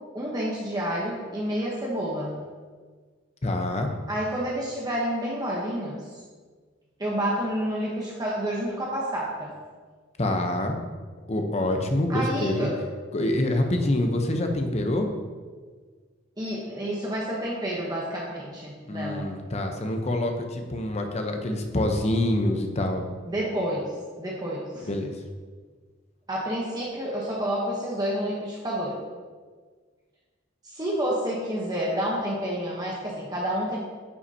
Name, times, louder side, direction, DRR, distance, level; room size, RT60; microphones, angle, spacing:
voice 1, 0.1-2.4 4.1-6.2 7.0-9.5 12.1-12.7 16.4-19.3 23.2-23.9 24.2-24.9 26.3-29.0 30.6-33.8, equal, 20° right, -5 dB, 0.9 m, -29 dB
voice 2, 3.4-3.9 10.2-10.8 11.3-12.7 13.1-15.1 18.9-23.0 24.9-25.1, left 1 dB, 35° left, 4 dB, 0.7 m, -26 dB
9.5 x 5.7 x 2.8 m, 1.5 s
head